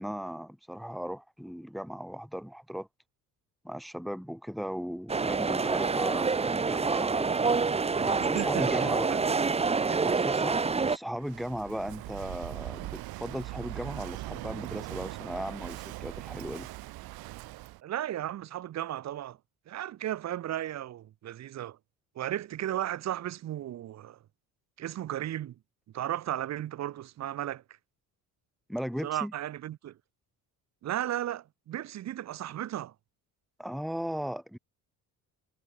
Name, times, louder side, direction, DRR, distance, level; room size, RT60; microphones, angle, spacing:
voice 1, 0.0-2.9 3.6-7.3 8.0-9.1 10.0-10.5 10.9-16.7 28.7-29.3 33.6-34.6, equal, ahead, 2.5 m, -37 dB
sound 1, 5.1-11.0, right 4 dB, 15° right, 4.8 m, -27 dB
voice 2, 8.0-9.4 9.9-10.0 17.8-19.4 19.7-21.8 22.1-24.2 24.8-25.5 25.9-27.6 29.0-30.0 30.8-32.9, right 12 dB, 45° right, 4.4 m, -35 dB
Walk footsteps / Wind / Waves surf, 11.2-17.8, right 19 dB, 80° right, 5.5 m, -40 dB
cardioid pair, 180°, 36 cm